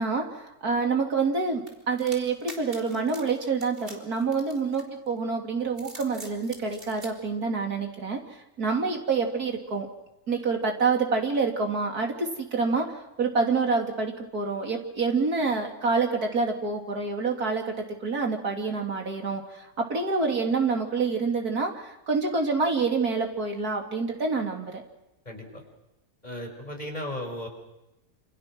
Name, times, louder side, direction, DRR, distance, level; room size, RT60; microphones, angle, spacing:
voice 1, 0.0-8.2 8.6-9.9 10.3-12.9 13.2-17.7 18.0-24.8, right 4 dB, 75° right, 2 dB, 3.7 m, -27 dB
sound 1, 1.7-5.1 5.6-7.1, right 1 dB, 35° right, 4.1 m, -45 dB
voice 2, 25.2-25.6 26.2-27.5, left 1 dB, 25° left, 2 dB, 6.3 m, -35 dB
28.0 x 27.5 x 6.3 m, 0.90 s
omnidirectional pair, 1.6 m